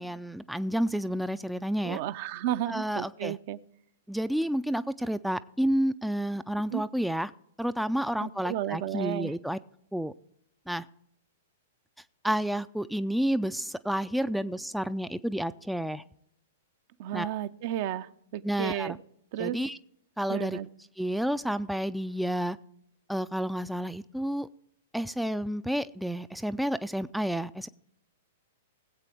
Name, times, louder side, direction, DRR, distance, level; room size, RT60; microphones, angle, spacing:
voice 1, 0.0-2.0 2.7-3.4 4.1-7.3 7.6-9.6 9.9-10.1 10.7-10.9 12.2-16.0 17.1-17.3 18.4-19.0 19.4-19.8 20.2-20.6 21.0-22.6 23.1-24.5 24.9-27.7, equal, ahead, 12 dB, 0.4 m, -30 dB
voice 2, 1.8-3.6 6.7-6.8 8.2-9.3 17.0-19.0 19.3-19.6 20.3-20.7, right 12 dB, 50° right, 13 dB, 0.6 m, -33 dB
20.0 x 8.2 x 3.4 m, 0.73 s
figure-of-eight pair, 105°, 0 cm